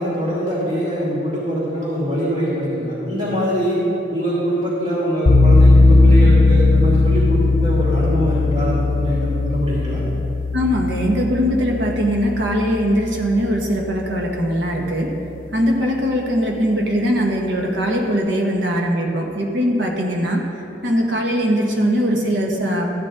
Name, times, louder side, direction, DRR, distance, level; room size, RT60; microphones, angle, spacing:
voice 1, 0.0-3.8 4.1-10.0, equal, 35° right, -8 dB, 2.5 m, -23 dB
sound 1, 5.3-14.1, left 2 dB, 50° left, 0.7 m, -17 dB
voice 2, 10.5-15.2 15.5-20.4 20.8-22.9, equal, 80° right, 1 dB, 1.4 m, -20 dB
13.5 x 8.8 x 3.8 m, 2.9 s
head